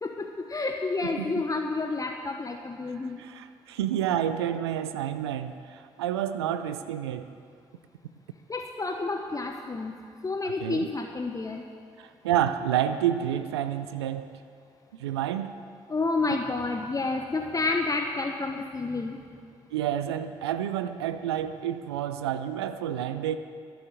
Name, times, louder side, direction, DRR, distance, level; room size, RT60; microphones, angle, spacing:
voice 1, 0.0-3.2 8.5-9.9 10.2-11.6 15.9-19.2, left 3 dB, 25° left, 4 dB, 1.0 m, -30 dB
voice 2, 3.2-7.3 10.4-10.9 12.0-14.3 15.0-15.5 19.7-23.4, right 10 dB, 85° right, 11 dB, 0.4 m, -29 dB
13.5 x 7.0 x 8.8 m, 2.3 s
hypercardioid pair, 40°, 13 cm